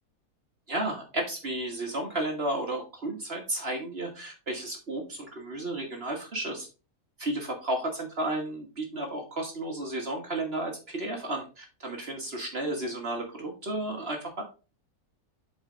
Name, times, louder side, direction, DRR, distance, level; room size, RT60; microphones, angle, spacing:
voice 1, 0.7-6.7 7.2-14.4, right 1 dB, 40° right, 2 dB, 1.5 m, -33 dB
7.9 x 4.4 x 3.8 m, 0.32 s
omnidirectional pair, 1.6 m